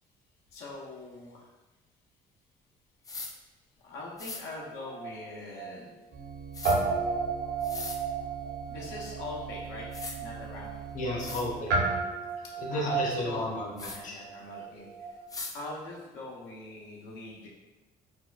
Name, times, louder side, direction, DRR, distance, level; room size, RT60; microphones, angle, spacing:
voice 1, 0.5-1.5 3.8-5.9 8.7-9.9 10.2-10.8 12.7-13.5 13.9-14.9 15.5-17.5, left 2 dB, 90° left, -3 dB, 0.7 m, -42 dB
sound 1, 3.0-3.3 4.2-4.4 6.5-6.8 7.6-8.0 9.5-9.6 9.9-10.2 10.8-10.9 11.2-11.5 13.8-14.0 15.3-15.6, left 3 dB, 20° left, 0.4 m, -39 dB
Guitar, 4.5-6.3 6.6-15.3, right 4 dB, 80° right, 0.8 m, -33 dB
sound 2, 6.1-11.6, right 7 dB, 50° right, 0.5 m, -44 dB
voice 2, 10.9-11.7 12.6-14.2, left 2 dB, 50° left, -2 dB, 0.8 m, -33 dB
4.4 x 2.2 x 2.4 m, 1.1 s
cardioid pair, 110°, 17 cm